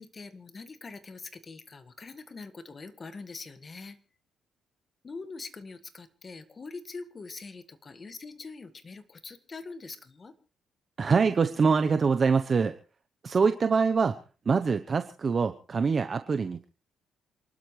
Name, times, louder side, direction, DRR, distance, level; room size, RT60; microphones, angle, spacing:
voice 1, 0.0-4.0 5.0-10.3, left 4 dB, 35° left, 10 dB, 1.7 m, -43 dB
voice 2, 11.0-12.8 13.2-16.6, right 5 dB, 40° right, 8 dB, 0.8 m, -25 dB
28.0 x 12.0 x 3.2 m, 0.36 s
cardioid pair, 90°, 0 cm